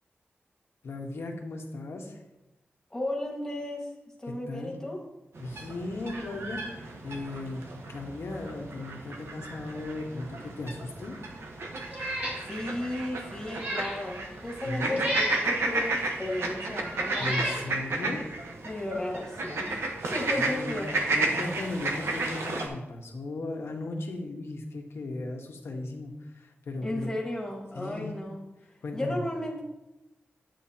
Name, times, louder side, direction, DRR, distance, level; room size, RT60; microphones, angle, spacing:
voice 1, 0.8-2.2 4.5-4.7 5.4-11.2 14.6-15.0 17.2-18.2 20.3-27.1 27.7-28.2 28.8-29.2, left 2 dB, 80° left, 2 dB, 1.4 m, -36 dB
voice 2, 2.9-3.9 4.2-5.0 12.5-17.6 18.6-20.9 26.8-29.6, left 1 dB, 15° left, -1 dB, 1.8 m, -34 dB
sound 1, 5.3-22.7, right 2 dB, 85° right, 1.2 m, -33 dB
Meow, 11.9-12.4 12.8-12.9 13.4-14.0 15.0-15.5 16.3-16.4 17.0-17.6, equal, 45° right, 3.6 m, -32 dB
10.5 x 8.4 x 2.9 m, 0.96 s
wide cardioid pair, 160°, 4 cm